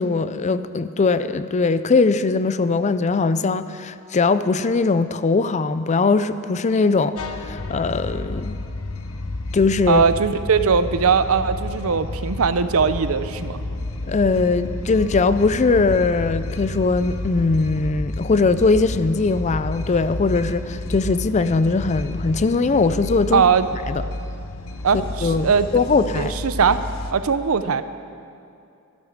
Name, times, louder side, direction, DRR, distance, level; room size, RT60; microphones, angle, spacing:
voice 1, 0.0-8.6 9.5-10.0 14.0-23.4 23.9-24.0 24.9-26.3, left 4 dB, 30° left, 13 dB, 0.4 m, -20 dB
sound 1, 7.2-27.1, left 2 dB, 65° left, 0.8 m, -31 dB
voice 2, 9.9-13.6 23.3-23.7 24.8-25.7 26.1-26.8 27.1-27.8, right 6 dB, 70° right, 12 dB, 0.6 m, -20 dB
13.5 x 11.5 x 6.4 m, 2.6 s
head